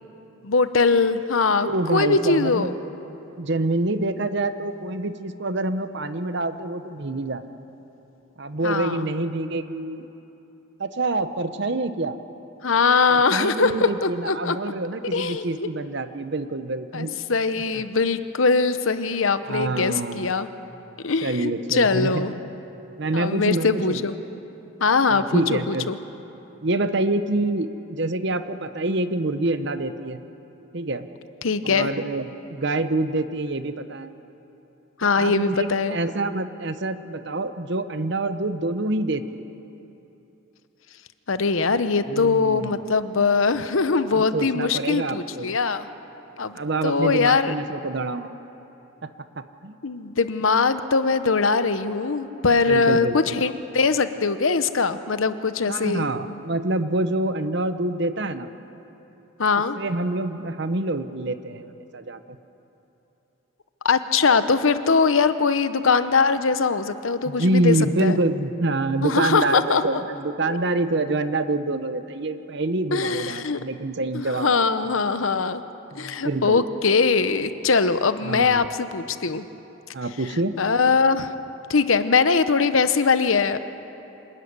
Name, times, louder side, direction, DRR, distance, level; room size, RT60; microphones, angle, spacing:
voice 1, 0.4-2.7 8.6-9.1 12.6-14.6 15.1-15.7 16.9-20.5 21.0-22.3 23.1-24.1 24.8-25.4 25.7-26.0 31.4-31.9 35.0-36.0 41.3-45.9 46.4-46.5 46.8-47.5 49.8-56.4 59.4-59.8 63.8-68.2 69.0-70.0 70.5-70.6 72.9-73.6 74.1-75.6 75.9-79.4 80.6-81.3 81.7-83.6, left 4 dB, 75° left, 11 dB, 0.9 m, -21 dB
voice 2, 1.6-2.7 3.4-7.4 8.4-10.1 10.8-12.2 13.1-17.2 19.4-20.3 21.2-22.4 23.0-24.0 25.1-25.9 26.6-30.2 30.7-31.1 31.6-34.1 35.2-39.5 42.1-42.9 44.1-45.5 46.5-48.3 49.0-49.1 49.6-49.8 52.7-53.4 55.7-58.5 59.8-62.4 67.2-74.9 75.9-76.6 78.2-78.6 79.9-80.5, right 2 dB, 55° right, 10 dB, 0.9 m, -26 dB
26.0 x 13.0 x 9.7 m, 3.0 s
head